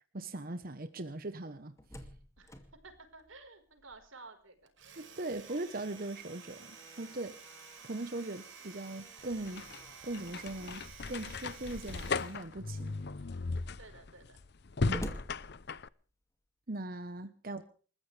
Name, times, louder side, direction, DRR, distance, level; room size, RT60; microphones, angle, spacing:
voice 1, 0.1-2.1 5.0-7.4 7.8-9.7 10.0-12.9 14.9-15.2 16.7-17.6, right 2 dB, 45° right, 10 dB, 1.1 m, -40 dB
Slam, 1.6-4.3 4.6-4.7 5.2-10.8 11.7-12.3 12.8-12.9 13.1-16.2, equal, 15° left, 2.5 m, -51 dB
voice 2, 2.4-4.7 13.8-14.4, right 3 dB, 90° right, 7 dB, 4.8 m, -53 dB
Domestic sounds home sounds, 4.7-12.5, right 7 dB, 70° right, 5.2 m, -53 dB
sound 1, 9.2-15.9, left 4 dB, 55° left, 0.7 m, -37 dB
28.5 x 14.5 x 3.4 m, 0.41 s
head